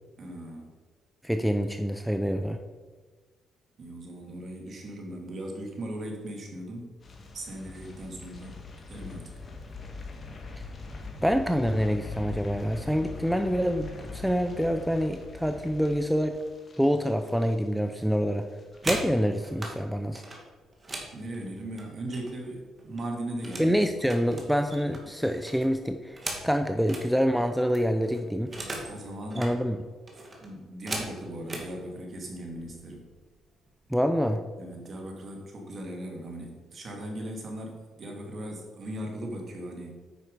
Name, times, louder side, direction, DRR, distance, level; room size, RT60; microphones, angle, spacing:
voice 1, 0.2-0.7 3.8-6.9 7.3-8.6 8.9-9.3 21.1-23.8 28.8-29.5 30.4-33.1 34.6-40.0, right 1 dB, 45° right, 1 dB, 2.5 m, -38 dB
voice 2, 1.2-2.6 11.2-16.4 16.8-18.4 18.9-20.2 23.6-26.2 26.4-28.5 29.4-29.8 33.9-34.4, equal, ahead, 6 dB, 0.6 m, -26 dB
sound 1, 7.0-18.2 18.4-18.8 19.1-19.2, left 3 dB, 40° left, 1.9 m, -42 dB
sound 2, 18.5-19.7 20.1-22.5 22.8-23.7 24.0-27.1 27.4-27.5 27.7-28.9 29.2-29.5 30.1-31.7 32.5-32.7 33.0-33.4 33.7-34.2, right 2 dB, 30° right, 2.2 m, -38 dB
9.4 x 5.9 x 5.0 m, 1.4 s
cardioid pair, 90°, 0 cm